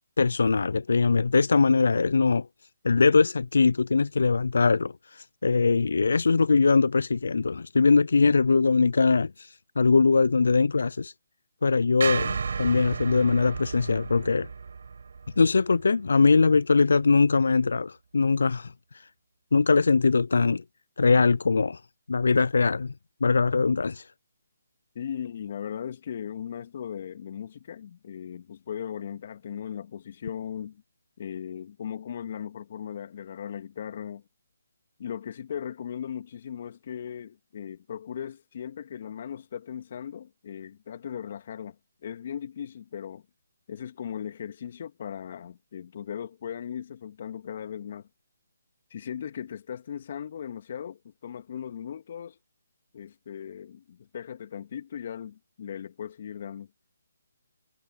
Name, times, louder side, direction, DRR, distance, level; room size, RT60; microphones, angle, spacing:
voice 1, 0.2-2.5 2.8-11.1 11.6-14.5 15.4-19.1 19.5-20.6 21.0-21.8 22.1-22.9 23.2-24.1, left 4 dB, 75° left, 0.4 m, -22 dB
sound 1, 12.0-16.3, right 5 dB, 65° right, 6.3 m, -33 dB
voice 2, 24.9-30.8 31.2-34.2 35.0-41.8 42.0-43.2 43.7-48.1 48.9-52.4 52.9-56.7, left 8 dB, 50° left, 2.2 m, -38 dB
figure-of-eight pair, 150°, 0 cm